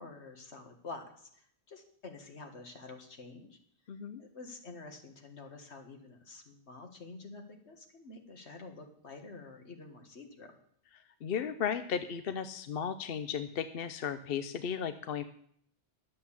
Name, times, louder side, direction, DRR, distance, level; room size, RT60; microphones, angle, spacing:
voice 1, 0.0-3.5 4.2-10.5, left 3 dB, 80° left, 5 dB, 2.0 m, -48 dB
voice 2, 3.9-4.2 11.2-15.2, left 7 dB, 60° left, 11 dB, 0.8 m, -35 dB
11.5 x 7.7 x 7.2 m, 0.63 s
omnidirectional pair, 1.1 m